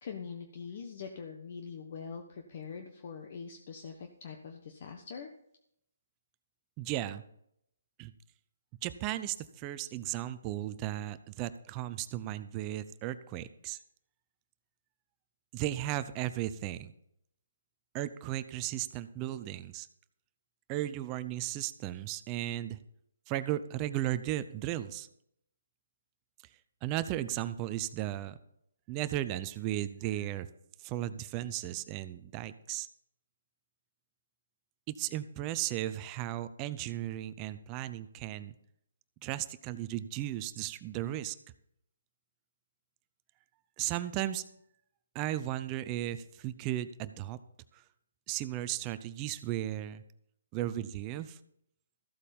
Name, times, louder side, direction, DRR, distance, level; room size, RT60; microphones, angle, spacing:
voice 1, 0.0-5.3, left 6 dB, 50° left, 4 dB, 1.2 m, -43 dB
voice 2, 6.8-7.2 8.0-8.1 8.8-13.8 15.5-16.9 17.9-19.9 20.7-22.8 23.3-25.1 26.8-28.4 28.9-30.5 30.8-32.9 34.9-38.5 39.2-41.4 43.8-44.4 45.1-47.4 47.7-47.8 48.3-50.0 50.5-51.4, right 13 dB, 25° right, 13 dB, 0.6 m, -35 dB
14.5 x 8.4 x 5.3 m, 0.73 s
hypercardioid pair, 155°, 0 cm